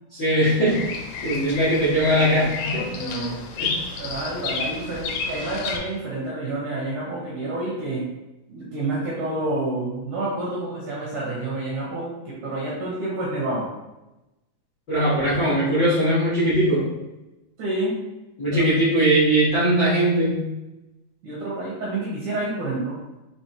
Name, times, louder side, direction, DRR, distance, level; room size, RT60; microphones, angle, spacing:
voice 1, 0.1-0.8 1.2-2.9 3.6-3.7 14.9-16.9 18.4-20.5, right 1 dB, 55° left, -12 dB, 1.2 m, -20 dB
Bird vocalization bird call bird song, 0.7-5.8, left 4 dB, 80° left, 2.3 m, -31 dB
voice 2, 2.9-3.4 4.0-8.0 8.5-13.7 17.6-18.0 18.5-18.8 21.2-23.0, right 2 dB, 75° right, -6 dB, 1.8 m, -29 dB
5.8 x 2.9 x 2.9 m, 0.99 s
omnidirectional pair, 4.4 m